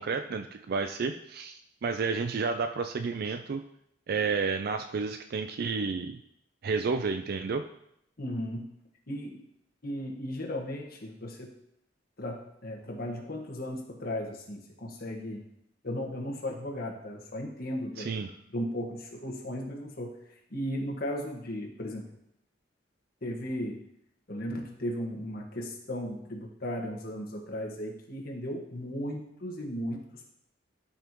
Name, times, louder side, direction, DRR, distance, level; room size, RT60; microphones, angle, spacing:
voice 1, 0.0-3.6 4.1-6.2 6.6-7.7 18.0-18.3, right 4 dB, 55° right, 7 dB, 0.4 m, -31 dB
voice 2, 8.2-8.7 9.1-9.4 9.8-11.5 12.2-15.4 15.8-18.1 18.5-20.1 20.5-22.0 23.2-23.8 24.3-30.1, equal, 55° left, 0 dB, 1.5 m, -36 dB
12.5 x 5.6 x 3.0 m, 0.77 s
head